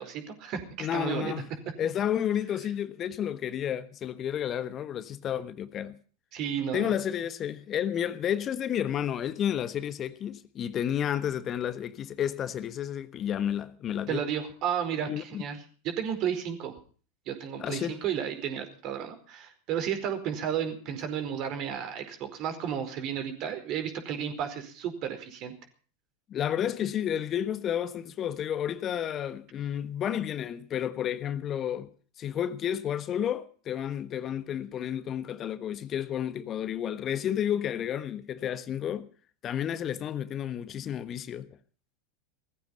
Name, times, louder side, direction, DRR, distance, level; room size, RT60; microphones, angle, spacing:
voice 1, 0.0-1.3 6.3-6.9 14.1-15.6 15.8-16.7 17.3-25.5, right 8 dB, 45° right, 4.6 m, -33 dB
voice 2, 0.8-1.5 1.8-6.0 6.7-14.2 15.1-15.4 17.6-18.0 26.3-31.9 32.2-39.1 39.4-41.5, left 10 dB, 35° left, 1.3 m, -31 dB
18.5 x 14.5 x 5.3 m
figure-of-eight pair, 85°, 0 cm